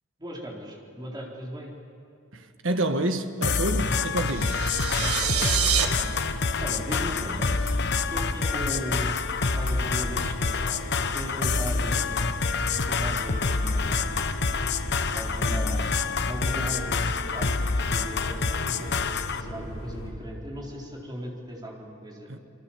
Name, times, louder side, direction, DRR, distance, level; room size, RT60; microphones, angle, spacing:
voice 1, 0.2-1.7 5.0-5.9 6.3-7.5 8.1-9.1 9.5-12.3 12.8-14.1 15.1-15.9 16.3-17.0 17.3-22.3, equal, 20° right, 4.1 m, -38 dB
voice 2, 2.3-4.5 22.3-22.4, right 1 dB, 60° right, 1.5 m, -28 dB
sound 1, 3.4-19.4, left 4 dB, 50° left, 1.0 m, -27 dB
sound 2, 4.3-20.1, equal, 80° left, 4.9 m, -36 dB
sound 3, 4.3-5.9, right 8 dB, 85° right, 1.9 m, -26 dB
27.5 x 23.5 x 7.4 m
head